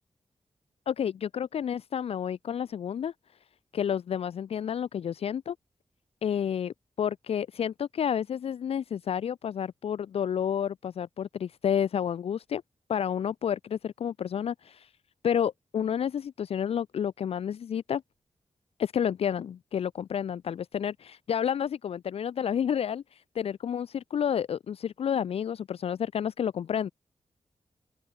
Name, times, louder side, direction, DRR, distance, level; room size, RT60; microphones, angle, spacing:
voice 1, 0.9-3.1 3.7-5.6 6.2-12.6 12.9-14.9 15.2-18.0 18.8-23.0 23.4-26.9, left 8 dB, 70° left, 0.4 m, -30 dB
open air
wide cardioid pair, 100°, 11 cm